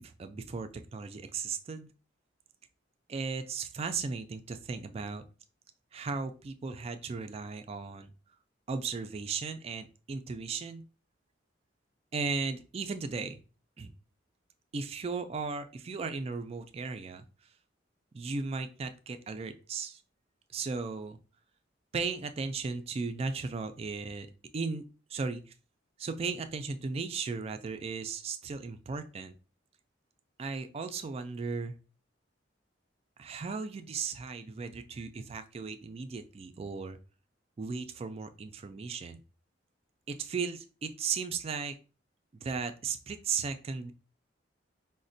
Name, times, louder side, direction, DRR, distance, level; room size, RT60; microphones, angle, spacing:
voice 1, 0.0-1.9 3.1-5.2 5.9-8.1 8.7-10.8 12.1-13.4 13.8-13.9 14.7-17.3 18.1-20.0 20.5-21.2 21.9-24.3 24.5-25.4 26.0-29.3 30.4-31.8 33.2-37.0 37.6-39.2 40.1-41.8 42.4-43.9, right 4 dB, 30° right, 9 dB, 0.3 m, -36 dB
4.9 x 2.1 x 2.6 m, 0.35 s
head